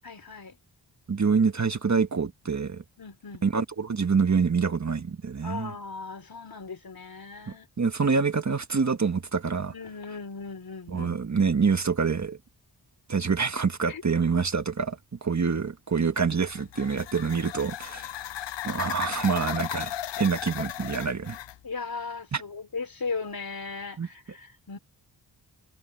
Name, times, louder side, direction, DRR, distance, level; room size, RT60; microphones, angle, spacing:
voice 1, 0.0-0.6 3.0-3.4 5.4-7.7 9.7-11.4 13.9-14.0 21.6-24.8, left 4 dB, 55° left, 4.0 m, -37 dB
voice 2, 1.1-2.8 3.4-5.7 7.8-9.7 10.9-12.4 13.1-18.1 18.6-21.4 22.3-22.4 24.0-24.1, right 5 dB, 40° right, 1.5 m, -26 dB
sound 1, 16.3-21.6, left 11 dB, 80° left, 0.6 m, -36 dB
wide cardioid pair, 110°, 42 cm